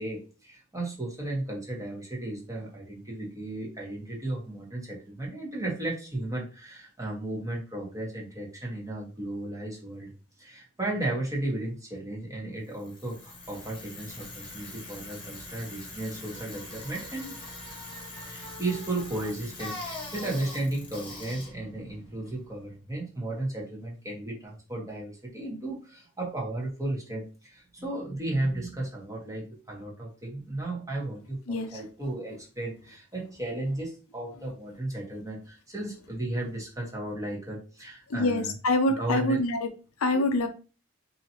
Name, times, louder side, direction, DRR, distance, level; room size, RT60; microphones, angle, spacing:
voice 1, 0.0-10.1 10.4-17.4 18.2-38.5 39.0-39.4, right 2 dB, 15° right, -3 dB, 1.3 m, -34 dB
Bicycle, 12.7-22.8, left 2 dB, 25° left, 1.3 m, -42 dB
voice 2, 31.5-31.8 38.1-39.7 40.0-40.5, left 2 dB, 70° left, 7 dB, 0.6 m, -25 dB
4.8 x 2.8 x 2.9 m, 0.35 s
head